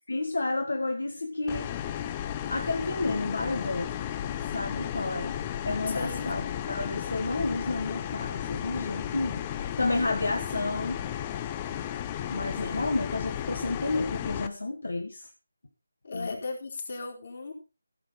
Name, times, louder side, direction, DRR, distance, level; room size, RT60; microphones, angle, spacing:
voice 1, 0.1-1.7 2.5-3.9 4.2-5.4 5.6-11.0 12.3-15.3 16.1-16.4, left 2 dB, 70° left, 5 dB, 1.6 m, -31 dB
sound 1, 1.5-14.5, left 10 dB, 20° left, 0.7 m, -34 dB
voice 2, 5.9-6.3 16.0-17.5, left 3 dB, 50° left, 1 dB, 4.0 m, -36 dB
16.0 x 7.6 x 4.1 m, 0.32 s
figure-of-eight pair, 160°, 0 cm